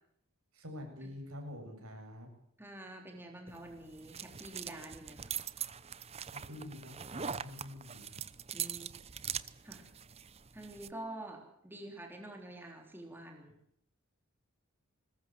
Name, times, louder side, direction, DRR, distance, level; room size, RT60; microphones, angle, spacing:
voice 1, 0.5-2.3 6.3-8.2, left 1 dB, 85° right, 4 dB, 7.7 m, -47 dB
voice 2, 2.6-5.3 8.5-8.9 9.6-9.9 10.5-13.5, right 1 dB, 10° right, 2 dB, 3.6 m, -47 dB
sound 1, 3.5-10.9, right 8 dB, 30° right, 0.8 m, -42 dB
21.0 x 20.0 x 7.6 m, 0.73 s
head